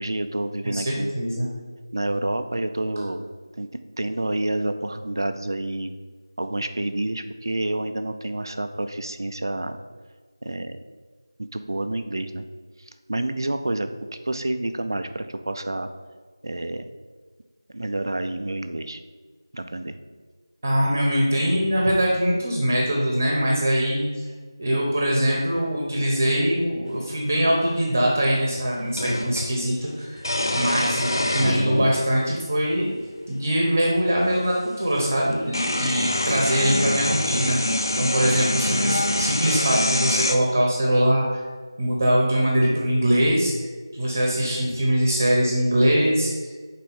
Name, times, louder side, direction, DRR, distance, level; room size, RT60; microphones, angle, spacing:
voice 1, 0.0-1.1 1.9-3.3 3.6-3.7 4.0-5.9 6.4-9.8 10.4-10.8 11.4-12.5 12.8-13.9 14.2-15.9 16.4-16.9 17.7-19.0 19.5-20.0, right 1 dB, 55° right, 9 dB, 0.5 m, -28 dB
voice 2, 0.7-1.5 20.6-24.3 24.6-30.2 30.5-32.9 33.3-37.6 38.0-41.4 41.8-43.7 43.9-46.5, equal, 35° right, -2 dB, 1.0 m, -22 dB
sound 1, 27.3-27.4 29.0-29.5 30.2-32.0 33.0-33.1 34.5-34.6 35.0-40.4, left 1 dB, 60° left, 0.7 m, -25 dB
4.6 x 4.1 x 5.5 m, 1.5 s
figure-of-eight pair, 170°, 2 cm